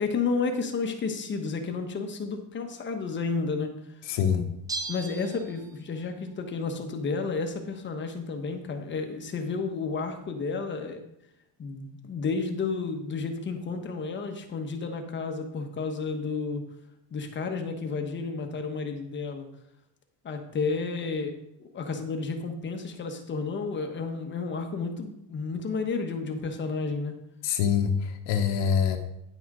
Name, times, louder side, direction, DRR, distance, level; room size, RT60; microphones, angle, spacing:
voice 1, 0.0-3.7 4.9-11.0 11.6-16.6 17.1-19.5 20.2-21.3 21.6-27.1, left 4 dB, 25° left, 5 dB, 1.1 m, -31 dB
voice 2, 4.1-4.5 27.4-29.0, left 7 dB, 70° left, 4 dB, 1.1 m, -25 dB
Bell, 4.7-6.1 6.4-6.5, right 3 dB, 10° right, 0.5 m, -37 dB
10.0 x 6.2 x 4.8 m, 0.82 s
cardioid pair, 165°, 43 cm